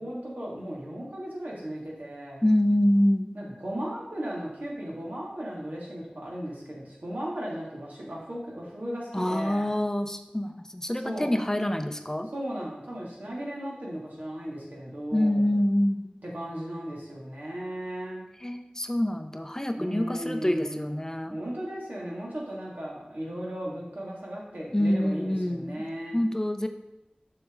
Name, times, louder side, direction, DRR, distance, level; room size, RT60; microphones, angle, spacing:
voice 1, 0.0-2.4 3.3-9.7 11.0-11.3 12.3-15.5 16.2-18.3 19.8-20.9 21.3-26.2, equal, 75° right, -5 dB, 2.4 m, -36 dB
voice 2, 2.4-3.4 9.1-12.3 15.1-16.1 18.4-21.4 24.7-25.9 26.1-26.7, left 1 dB, 20° left, 7 dB, 0.5 m, -26 dB
7.0 x 6.0 x 3.9 m, 0.94 s
wide cardioid pair, 45°, 3 cm